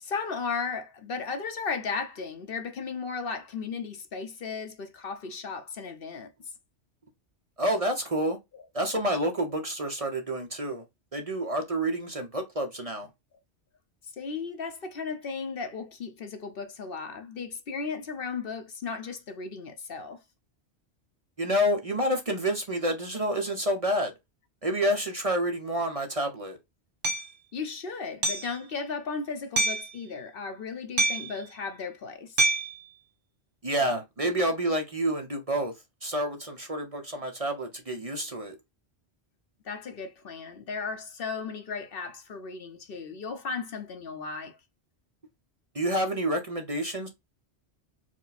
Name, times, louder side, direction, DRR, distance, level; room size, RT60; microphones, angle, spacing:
voice 1, 0.0-6.3 8.5-8.6 14.1-20.2 27.5-32.4 39.6-44.6, left 5 dB, 60° left, 0.9 m, -35 dB
voice 2, 7.6-8.4 8.7-10.8 11.1-13.1 21.4-24.1 24.6-26.6 33.6-35.7 36.0-38.6 45.7-47.1, equal, 35° right, 0.8 m, -28 dB
Hammer, 27.0-27.3 28.2-28.5 29.6-29.9 31.0-31.4 32.4-32.8, right 2 dB, 85° right, 1.3 m, -25 dB
4.7 x 2.1 x 4.1 m
omnidirectional pair, 1.2 m